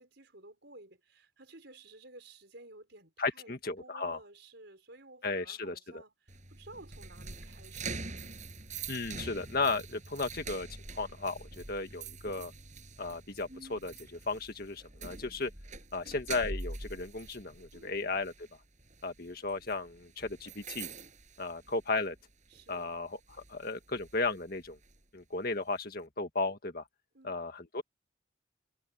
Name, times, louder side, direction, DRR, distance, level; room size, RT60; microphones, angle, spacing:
voice 1, 0.0-8.0 17.7-18.1 22.5-23.1 27.1-27.6, right 2 dB, 60° right, 6.0 m, -54 dB
voice 2, 3.2-4.2 5.2-6.0 8.9-10.7 11.0-12.5 13.0-15.5 15.9-18.3 19.0-20.9 21.4-22.2 22.7-24.8 25.1-26.8 27.2-27.8, left 3 dB, 50° left, 1.9 m, -35 dB
sound 1, 6.3-22.2 22.5-22.8 23.3-25.0, right 3 dB, 40° right, 7.4 m, -45 dB
head